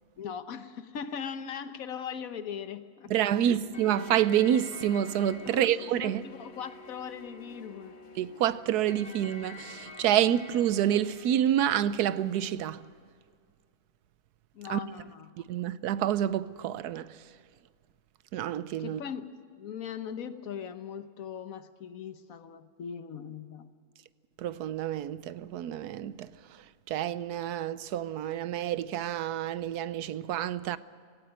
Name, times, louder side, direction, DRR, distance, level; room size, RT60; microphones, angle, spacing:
voice 1, 0.2-3.7 5.4-7.9 14.5-15.3 18.8-23.7, left 7 dB, 65° left, 1.4 m, -40 dB
voice 2, 3.1-6.2 8.2-12.8 14.7-14.8 15.5-17.2 18.3-19.0 24.4-26.6 26.9-30.8, right 11 dB, 80° right, 1.2 m, -28 dB
sound 1, 3.7-12.5, left 3 dB, 45° left, 1.5 m, -48 dB
18.0 x 17.5 x 8.8 m
omnidirectional pair, 1.6 m